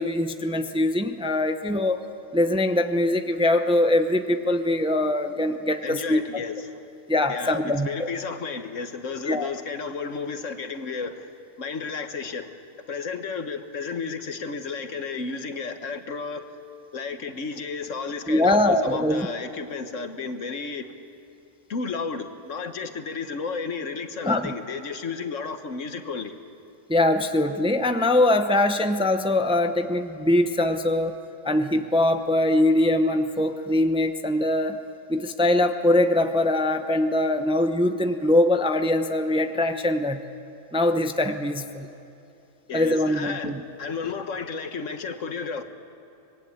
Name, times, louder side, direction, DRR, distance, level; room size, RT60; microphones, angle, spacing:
voice 1, 0.0-2.0 2.3-6.4 7.1-8.1 9.3-9.5 18.3-19.3 24.2-24.5 26.9-31.2 31.4-34.8 35.1-40.2 40.7-41.9 42.7-43.6, left 1 dB, 5° right, 7 dB, 0.7 m, -22 dB
voice 2, 5.8-6.8 7.3-11.3 11.6-12.5 12.9-16.4 16.9-20.9 21.7-26.3 42.7-45.6, left 5 dB, 70° left, 8 dB, 1.6 m, -32 dB
25.0 x 21.0 x 8.7 m, 2.7 s
omnidirectional pair, 1.3 m